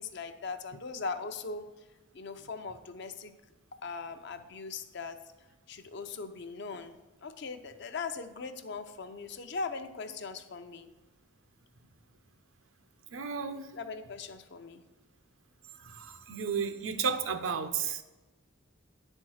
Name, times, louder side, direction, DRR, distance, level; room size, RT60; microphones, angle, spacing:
voice 1, 0.0-1.6 2.1-3.3 3.8-5.2 5.7-10.9 13.7-14.8, left 4 dB, 55° left, 8 dB, 0.6 m, -40 dB
voice 2, 13.1-13.7 15.8-18.0, right 6 dB, 80° right, 8 dB, 0.7 m, -33 dB
9.6 x 4.5 x 6.2 m, 1.1 s
head